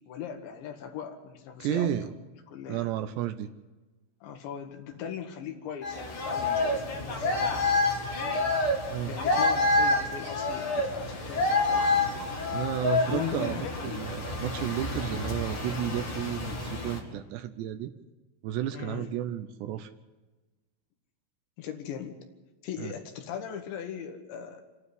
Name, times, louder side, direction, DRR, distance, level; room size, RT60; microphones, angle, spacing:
voice 1, 0.1-1.9 2.5-2.9 4.2-7.8 9.0-12.1 13.1-14.1 18.7-19.1 21.6-22.2 22.6-24.6, left 7 dB, 70° left, 4 dB, 3.4 m, -39 dB
voice 2, 1.6-2.1 2.7-3.5 8.9-9.2 12.2-17.9 18.4-19.9 22.8-22.9, right 11 dB, 80° right, 9 dB, 2.5 m, -32 dB
sound 1, 5.8-17.0, left 2 dB, 40° left, 2.3 m, -28 dB
27.0 x 9.9 x 9.9 m, 1.2 s
omnidirectional pair, 5.7 m